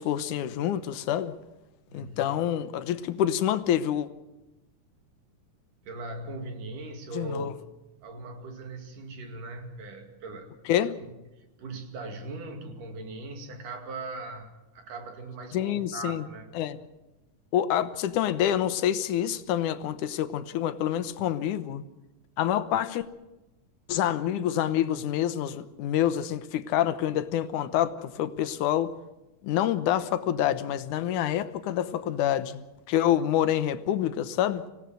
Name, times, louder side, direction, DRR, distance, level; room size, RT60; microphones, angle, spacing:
voice 1, 0.0-1.3 1.9-4.1 7.1-7.5 10.7-11.0 15.5-16.2 16.6-16.8 17.5-21.8 22.4-23.1 23.9-28.9 29.4-32.6 32.9-34.6, left 11 dB, 80° left, 2.4 m, -27 dB
voice 2, 1.9-2.4 5.9-7.6 8.0-10.5 11.0-16.5, right 2 dB, 85° right, 3.9 m, -39 dB
25.5 x 17.0 x 6.3 m
omnidirectional pair, 3.6 m